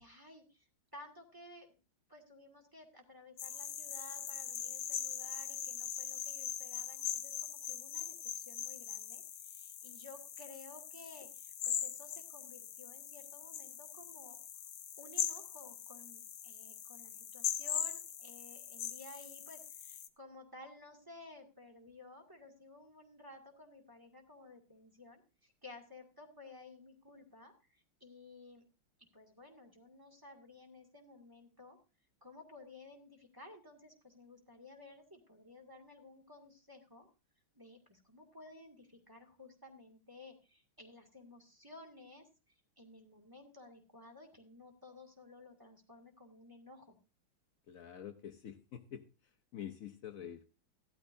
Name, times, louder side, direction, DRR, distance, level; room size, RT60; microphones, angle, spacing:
voice 1, 0.0-1.8 2.1-14.4 15.0-28.7 29.1-31.8 32.2-37.1 37.5-47.0, left 2 dB, 10° right, 2 dB, 2.0 m, -55 dB
sound 1, 3.4-20.1, left 9 dB, 60° left, 1.1 m, -41 dB
voice 2, 47.7-49.1 49.5-50.5, left 9 dB, 90° left, 7 dB, 0.7 m, -47 dB
15.0 x 12.5 x 2.6 m, 0.30 s
omnidirectional pair, 2.4 m